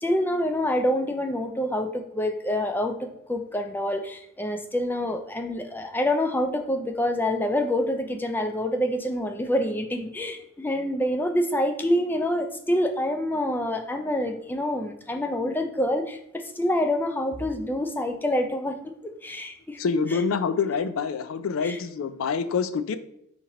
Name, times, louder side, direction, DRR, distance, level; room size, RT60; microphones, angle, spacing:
voice 1, 0.0-18.8 19.0-19.8 20.1-20.2 21.6-21.8, left 1 dB, 10° left, 5 dB, 0.4 m, -27 dB
voice 2, 19.8-23.0, left 5 dB, 85° left, 12 dB, 0.4 m, -26 dB
4.4 x 3.0 x 3.7 m, 0.77 s
head